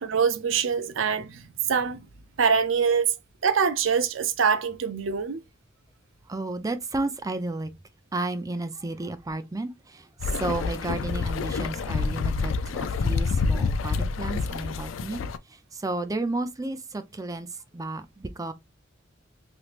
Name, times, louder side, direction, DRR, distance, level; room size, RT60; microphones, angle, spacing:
voice 1, 0.0-2.0 2.4-3.1 3.4-5.4, right 6 dB, 80° right, 0.6 m, -24 dB
voice 2, 6.3-7.7 8.1-18.5, right 2 dB, 20° right, 0.4 m, -32 dB
sound 1, 10.2-15.4, left 4 dB, 75° left, 0.4 m, -27 dB
3.2 x 3.1 x 2.4 m
head